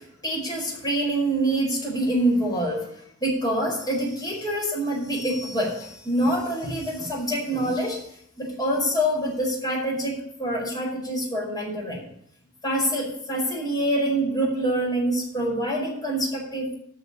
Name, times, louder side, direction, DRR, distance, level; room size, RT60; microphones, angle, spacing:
voice 1, 0.0-2.9 3.2-8.1 8.4-12.0 12.6-16.8, right 1 dB, 20° left, -3 dB, 5.1 m, -26 dB
12.5 x 5.0 x 8.5 m, 0.70 s
head